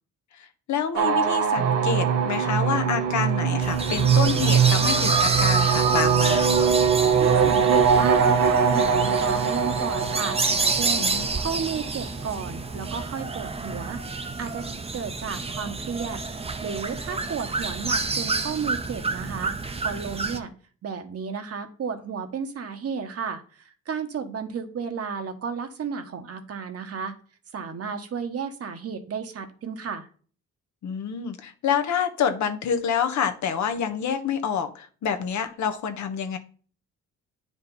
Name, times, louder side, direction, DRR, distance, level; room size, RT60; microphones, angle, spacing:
voice 1, 0.4-6.6 11.0-11.3 17.1-17.2 30.8-36.4, left 7 dB, 70° left, 8 dB, 1.3 m, -28 dB
sound 1, 0.9-12.1, right 7 dB, 85° right, 1.3 m, -22 dB
sound 2, 3.6-20.4, right 3 dB, 20° right, 0.9 m, -28 dB
voice 2, 7.2-10.4 10.7-11.1 11.4-14.0 14.4-14.6 14.9-16.2 16.6-19.5 19.8-20.5 20.8-23.4 23.9-27.1 27.5-30.1, right 6 dB, 50° right, 7 dB, 1.4 m, -33 dB
9.3 x 5.2 x 4.1 m, 0.41 s
cardioid pair, 90°, 30 cm